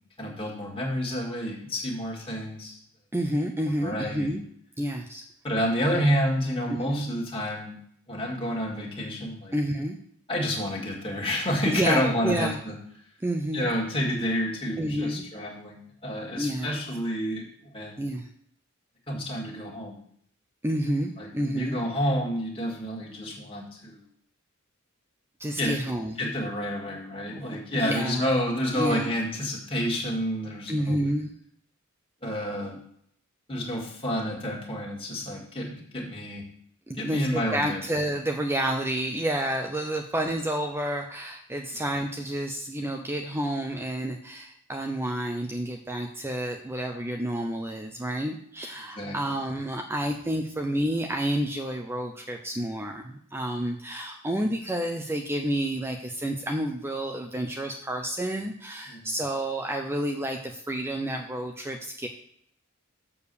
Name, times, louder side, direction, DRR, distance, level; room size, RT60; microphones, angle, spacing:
voice 1, 0.2-2.8 3.8-4.3 5.4-7.8 8.1-9.5 10.3-12.7 13.5-17.5 17.7-17.9 19.1-20.0 21.2-24.0 25.6-25.8 26.2-31.0 32.2-32.8 33.5-36.4 37.0-37.8 49.0-49.2 58.9-59.1, equal, 25° left, -2 dB, 2.0 m, -29 dB
voice 2, 3.1-4.4 4.8-5.3 5.9-6.1 6.7-7.0 9.5-10.0 11.7-12.6 13.2-13.7 14.8-15.2 16.3-16.7 18.0-18.3 20.6-21.8 25.4-26.2 27.3-28.3 28.7-29.1 30.7-31.3 36.9-62.1, right 1 dB, 10° right, 3 dB, 0.6 m, -30 dB
6.9 x 4.6 x 6.9 m, 0.66 s
head